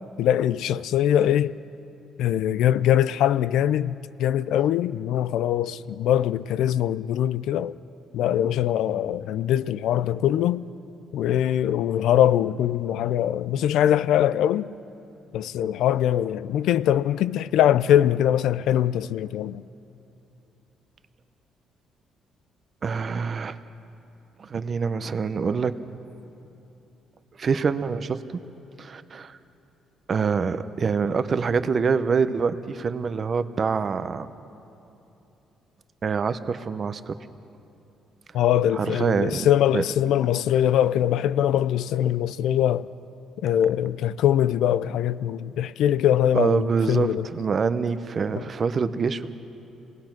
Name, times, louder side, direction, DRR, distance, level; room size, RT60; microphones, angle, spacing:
voice 1, 0.2-1.5 2.2-7.8 8.1-10.6 11.1-14.7 15.3-19.6 38.3-42.9 43.4-47.3 48.4-48.5, left 11 dB, 80° left, 0.4 m, -22 dB
voice 2, 22.8-23.6 24.4-25.8 27.4-28.2 28.8-29.4 30.1-34.3 36.0-37.1 38.7-39.8 46.3-49.3, right 5 dB, 30° right, 0.7 m, -25 dB
28.0 x 19.5 x 6.0 m
cardioid pair, 175°, 0 cm